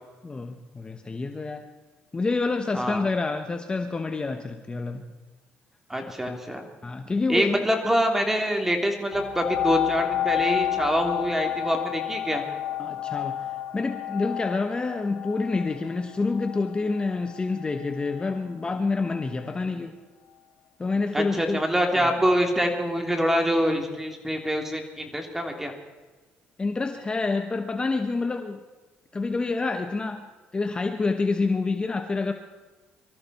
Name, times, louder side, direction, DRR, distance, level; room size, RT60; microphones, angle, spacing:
voice 1, 0.2-1.6 2.1-5.1 6.3-6.4 6.8-7.7 12.8-20.0 20.8-21.6 21.9-22.1 26.6-28.6 29.1-30.3 30.5-32.3, left 3 dB, 25° left, 7 dB, 1.1 m, -28 dB
voice 2, 2.7-3.1 5.9-6.6 7.3-12.4 21.1-25.7, equal, 10° right, 3 dB, 3.1 m, -25 dB
sound 1, 9.1-18.4 19.0-19.1, left 12 dB, 75° left, 1.1 m, -31 dB
24.0 x 14.0 x 4.3 m, 1.2 s
cardioid pair, 90°, 4 cm